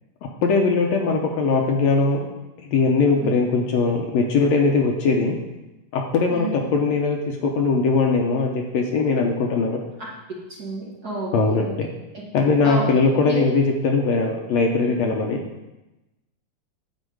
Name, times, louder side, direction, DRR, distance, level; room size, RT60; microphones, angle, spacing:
voice 1, 0.4-2.3 2.6-5.4 5.9-9.9 11.3-11.9 12.3-15.4, left 4 dB, 70° left, 1 dB, 2.0 m, -20 dB
voice 2, 6.3-6.7 10.5-11.7 12.1-12.2 12.6-12.8 13.3-13.4 14.9-15.0, right 2 dB, 35° right, -5 dB, 2.0 m, -31 dB
9.9 x 4.8 x 7.9 m, 1.0 s
omnidirectional pair, 3.5 m